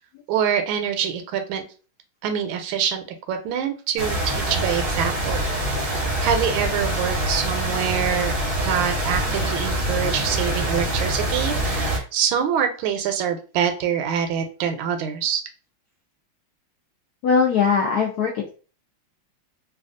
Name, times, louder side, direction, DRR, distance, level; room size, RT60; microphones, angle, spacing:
voice 1, 0.3-1.6 2.2-5.9 6.2-8.3 8.6-15.4, right 8 dB, 80° right, 6 dB, 1.3 m, -25 dB
sound 1, 4.0-12.0, right 1 dB, 40° right, 0.7 m, -25 dB
voice 2, 17.2-18.6, left 5 dB, 75° left, -1 dB, 0.9 m, -20 dB
3.3 x 2.3 x 2.5 m, 0.36 s
omnidirectional pair, 2.2 m